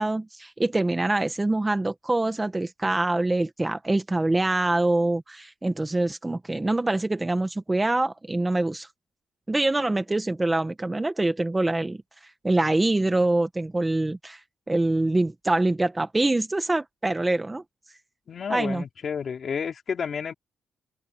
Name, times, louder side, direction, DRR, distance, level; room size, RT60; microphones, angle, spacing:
voice 1, 0.0-8.9 9.5-12.0 12.4-14.4 14.7-17.6 18.5-18.8, right 2 dB, 10° right, 1.3 m, -24 dB
voice 2, 18.3-20.3, left 6 dB, 40° left, 4.5 m, -31 dB
open air
cardioid pair, 140°, 0 cm